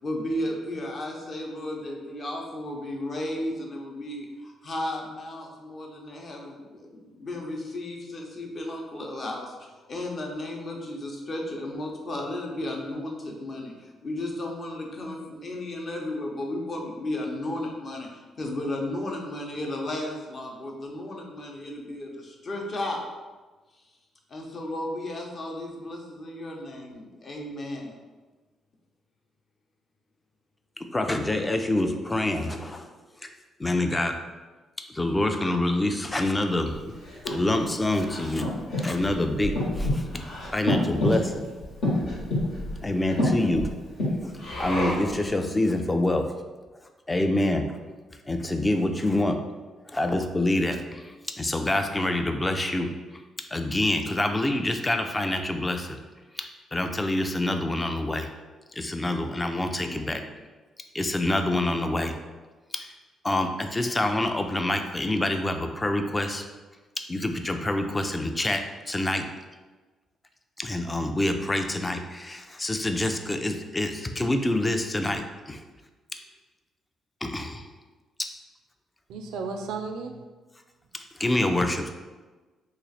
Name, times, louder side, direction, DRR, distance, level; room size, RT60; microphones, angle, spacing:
voice 1, 0.0-23.0 24.3-27.9 59.8-60.2, left 1 dB, 45° left, 0.8 m, -34 dB
voice 2, 30.9-32.9 33.6-34.1 34.9-37.0 37.3-38.5 38.8-40.2 40.5-41.4 42.8-43.7 44.2-44.3 44.6-46.3 47.1-47.8 48.3-49.4 49.9-51.1 51.4-52.9 53.5-56.0 56.4-58.3 58.8-60.2 60.9-62.1 62.7-62.9 63.2-66.4 67.1-69.3 70.6-75.6 77.2-77.6 81.2-81.9, left 1 dB, 20° left, 0.4 m, -26 dB
Breathing, 36.7-45.2, left 1 dB, 80° left, 1.3 m, -29 dB
voice 3, 79.1-80.2 81.7-81.9, right 4 dB, 90° right, 0.3 m, -34 dB
3.0 x 2.4 x 4.0 m
cardioid pair, 90°, 0 cm